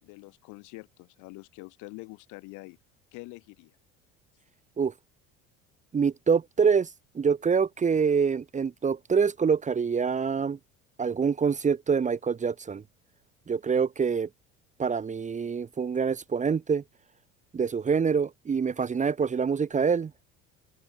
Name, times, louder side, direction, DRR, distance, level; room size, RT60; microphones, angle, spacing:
voice 1, 0.0-2.8 3.1-3.7, left 25 dB, 75° left, 3.4 m, -45 dB
voice 2, 5.9-6.9 7.1-10.6 11.0-12.8 13.5-14.3 14.8-16.8 17.5-20.1, right 6 dB, 25° right, 0.9 m, -25 dB
open air
supercardioid pair, 95°, 30 cm